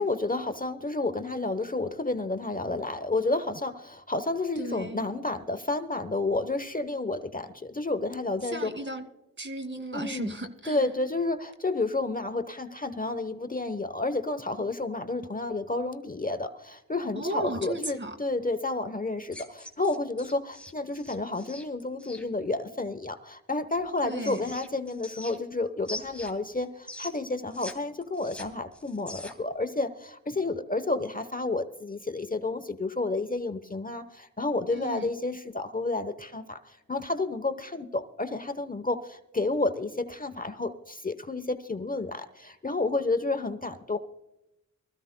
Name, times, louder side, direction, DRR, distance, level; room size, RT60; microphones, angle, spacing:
voice 1, 0.0-8.7 9.9-10.3 10.7-44.0, left 2 dB, 25° left, 10 dB, 0.9 m, -30 dB
voice 2, 4.6-5.1 8.4-9.0 9.4-10.9 17.2-18.2 24.0-24.5 34.7-35.1, right 1 dB, 35° right, 8 dB, 2.1 m, -35 dB
sound 1, 19.2-22.2 23.7-25.6 25.8-27.7 28.0-29.5, left 1 dB, 5° left, 2.9 m, -43 dB
24.0 x 14.5 x 2.2 m, 0.92 s
cardioid pair, 60°, 33 cm